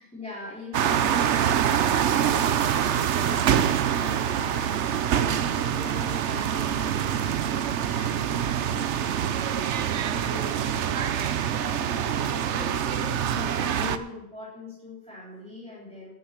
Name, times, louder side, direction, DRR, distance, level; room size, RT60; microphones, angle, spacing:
voice 1, 0.0-1.7 2.0-2.6 2.9-16.1, left 2 dB, 5° left, -8 dB, 3.5 m, -42 dB
sound 1, 0.7-14.0, right 9 dB, 80° right, 1.0 m, -25 dB
12.0 x 9.5 x 5.9 m, 0.85 s
omnidirectional pair, 1.2 m